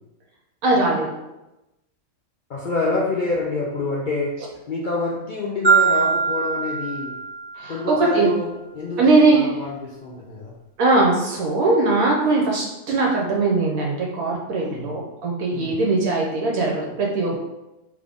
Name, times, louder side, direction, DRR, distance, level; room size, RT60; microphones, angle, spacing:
voice 1, 0.6-1.1 7.6-8.3 9.0-9.5 10.8-17.4, right 3 dB, 70° right, -2 dB, 1.1 m, -20 dB
voice 2, 2.5-4.4 4.7-7.2 7.7-10.6 14.6-15.0 15.5-15.8, left 3 dB, 90° left, -3 dB, 0.4 m, -27 dB
Marimba xylophone, 5.6-7.8, right 5 dB, 55° right, 1.2 m, -21 dB
3.8 x 3.3 x 3.5 m, 0.98 s
omnidirectional pair, 1.5 m